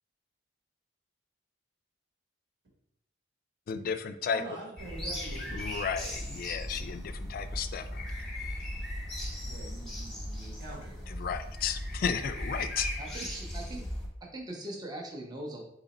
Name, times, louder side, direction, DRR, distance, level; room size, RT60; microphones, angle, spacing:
voice 1, 3.7-4.4 5.5-8.0 11.2-12.9, left 7 dB, 50° left, 9 dB, 0.3 m, -33 dB
voice 2, 4.3-5.8 9.4-11.3, right 2 dB, 65° right, -2 dB, 1.5 m, -45 dB
sound 1, 4.8-14.1, left 1 dB, 5° left, 1.0 m, -37 dB
voice 3, 13.0-13.9 14.3-15.6, right 1 dB, 20° right, 0 dB, 0.6 m, -40 dB
3.8 x 2.9 x 4.0 m, 0.78 s
head